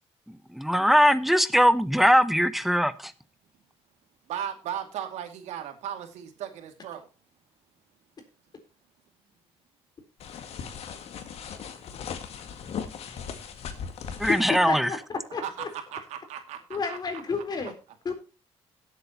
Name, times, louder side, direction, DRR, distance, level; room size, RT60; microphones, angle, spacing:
voice 1, 0.5-3.1 14.2-14.9, equal, ahead, 0.9 m, -21 dB
voice 2, 4.3-7.1 15.4-16.6 16.9-17.0, right 9 dB, 85° right, 2.4 m, -36 dB
sound 1, 10.2-14.5, left 7 dB, 65° left, 2.0 m, -38 dB
voice 3, 14.5-15.0 15.3-15.7 16.7-17.7 18.0-18.1, left 4 dB, 35° left, 3.9 m, -31 dB
17.5 x 8.2 x 3.0 m
cardioid pair, 115°, 11 cm